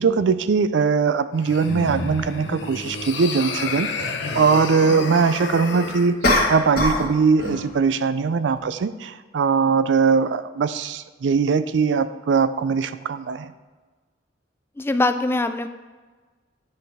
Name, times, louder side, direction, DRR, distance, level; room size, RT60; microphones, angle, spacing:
voice 1, 0.0-6.2 6.5-13.5, right 5 dB, 75° right, 13 dB, 0.4 m, -21 dB
sound 1, 1.3-6.1, left 4 dB, 75° left, 0.8 m, -30 dB
sound 2, 2.2-2.3 6.2-7.1 7.4-7.7, left 1 dB, 55° left, 1.6 m, -21 dB
voice 2, 14.8-15.7, left 2 dB, 15° left, 9 dB, 0.3 m, -22 dB
9.9 x 5.8 x 3.5 m, 1.3 s
head